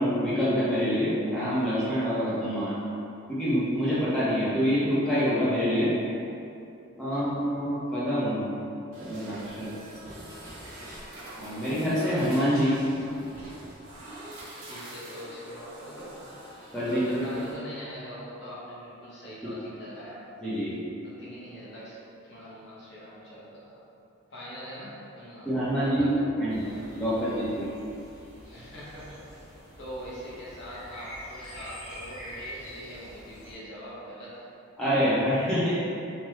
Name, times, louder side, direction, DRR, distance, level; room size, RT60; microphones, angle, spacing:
voice 1, 0.0-2.8 3.3-5.9 7.0-8.4 9.0-9.7 11.4-12.8 16.7-17.2 19.4-19.5 20.4-20.7 25.5-26.1 26.4-27.7 34.8-35.9, equal, 5° left, -12 dB, 0.7 m, -26 dB
sound 1, 8.9-17.5, right 1 dB, 80° right, 0.7 m, -44 dB
voice 2, 14.6-16.2 16.9-20.2 21.0-22.0 22.2-23.8 24.3-25.5 25.8-26.3 28.5-29.4 29.8-34.5, equal, 55° left, -8 dB, 0.9 m, -42 dB
sound 2, 26.5-33.5, equal, 85° left, 1.0 m, -45 dB
3.4 x 2.1 x 3.1 m, 2.7 s
head